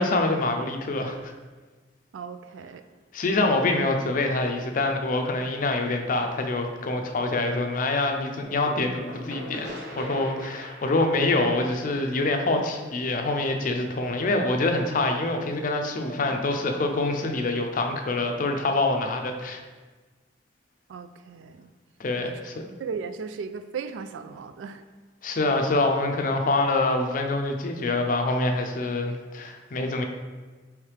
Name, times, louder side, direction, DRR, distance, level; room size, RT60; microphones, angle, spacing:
voice 1, 0.0-1.3 3.1-19.6 22.0-22.6 25.2-30.0, left 2 dB, 45° left, 4 dB, 0.5 m, -25 dB
voice 2, 2.1-2.8 20.9-21.7 22.2-22.4 22.8-24.8, right 5 dB, 90° right, 10 dB, 0.3 m, -36 dB
sound 1, 8.4-14.0, left 1 dB, 70° right, 1.1 m, -42 dB
4.8 x 3.2 x 3.2 m, 1.3 s
head